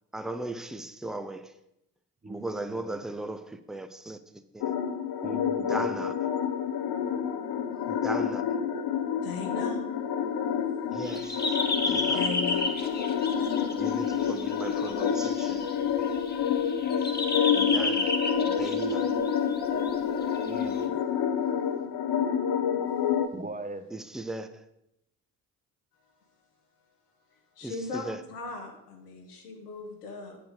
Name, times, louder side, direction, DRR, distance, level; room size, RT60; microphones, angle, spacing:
voice 1, 0.1-1.5 2.3-4.7 5.6-6.3 7.9-8.6 10.9-11.6 11.8-12.2 13.8-15.7 17.5-18.1 18.5-19.1 23.9-24.7 27.6-28.2, right 2 dB, ahead, 0.7 m, -37 dB
voice 2, 2.2-3.0 5.2-5.9 20.4-21.0 23.3-23.8, right 2 dB, 15° right, 1.1 m, -40 dB
sound 1, 4.6-23.3, left 7 dB, 55° left, 0.9 m, -28 dB
voice 3, 9.2-9.8 12.0-12.6 16.1-16.2 27.6-30.4, left 3 dB, 85° left, 1.3 m, -38 dB
sound 2, 11.0-20.9, left 2 dB, 20° left, 1.4 m, -33 dB
9.0 x 7.0 x 4.9 m
hypercardioid pair, 45°, 45 cm